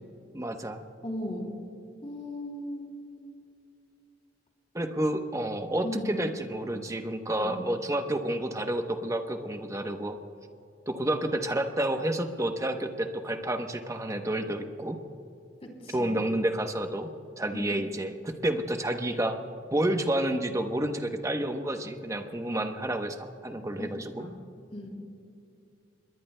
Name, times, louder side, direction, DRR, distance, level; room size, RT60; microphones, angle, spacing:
voice 1, 0.3-0.8 4.7-10.2 10.9-15.0 15.9-17.1 17.4-19.3 19.7-24.2, right 1 dB, 15° right, 6 dB, 0.8 m, -30 dB
voice 2, 1.0-1.5 2.0-2.9 5.8-6.2 7.4-7.5 15.6-16.1 17.5-17.6 23.8-23.9 24.2-24.4 24.7-24.9, left 1 dB, 35° left, 1 dB, 3.0 m, -37 dB
26.0 x 21.5 x 2.2 m, 2.7 s
head